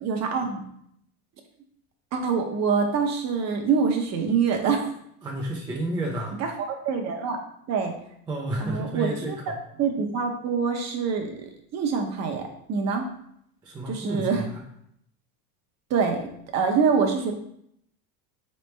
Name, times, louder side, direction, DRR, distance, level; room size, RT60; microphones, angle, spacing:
voice 1, 0.0-0.6 2.1-4.8 6.4-7.4 7.7-7.9 8.6-9.3 9.8-13.1 13.9-14.4 15.9-16.3 16.5-17.3, right 5 dB, 35° right, 3 dB, 0.8 m, -25 dB
voice 2, 5.2-6.4 8.3-9.6 13.6-14.6, right 1 dB, 10° right, -2 dB, 0.4 m, -31 dB
4.2 x 3.2 x 3.2 m, 0.71 s
supercardioid pair, 125°, 44 cm